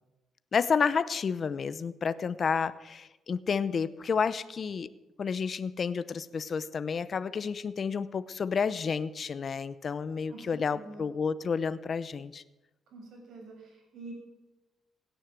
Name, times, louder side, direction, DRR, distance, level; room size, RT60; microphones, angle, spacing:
voice 1, 0.5-4.9 5.2-12.4, left 6 dB, 45° left, 15 dB, 0.8 m, -30 dB
voice 2, 10.3-11.1 12.9-14.1, right 2 dB, 70° right, 1 dB, 6.5 m, -47 dB
17.0 x 10.0 x 7.5 m, 1.0 s
cardioid pair, 90°, 0 cm